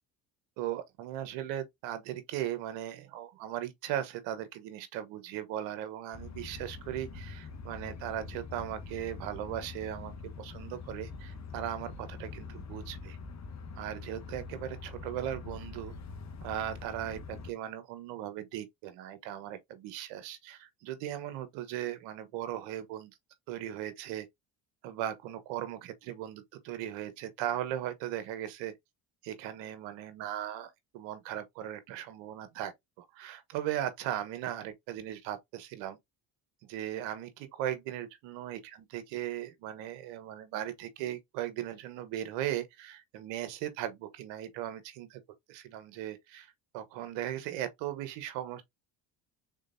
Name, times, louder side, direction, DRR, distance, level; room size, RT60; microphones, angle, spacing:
voice 1, 0.6-10.1 10.4-13.2 13.7-15.9 16.4-23.1 23.5-24.3 24.8-28.7 29.2-32.7 33.0-36.0 36.7-38.6 38.9-45.2 45.5-48.6, right 11 dB, 80° right, 1.1 m, -38 dB
sound 1, 6.1-17.5, left 4 dB, 40° left, 1.2 m, -44 dB
3.8 x 3.7 x 2.6 m
supercardioid pair, 75°, 43 cm